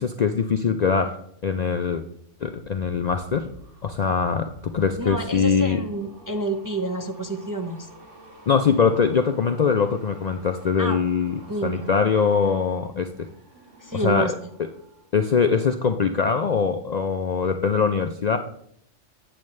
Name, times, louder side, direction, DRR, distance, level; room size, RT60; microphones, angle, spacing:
voice 1, 0.0-2.0 2.4-3.5 3.8-5.8 8.5-13.3 13.9-14.4 15.1-18.4, left 6 dB, 60° left, 6 dB, 0.4 m, -22 dB
sound 1, 2.4-15.1 15.4-15.8, equal, 70° right, 2.1 m, -49 dB
voice 2, 5.0-7.9 10.8-11.0 11.5-11.8 13.8-14.3, right 2 dB, 25° right, 3 dB, 0.4 m, -28 dB
8.8 x 7.7 x 3.2 m, 0.69 s
omnidirectional pair, 1.3 m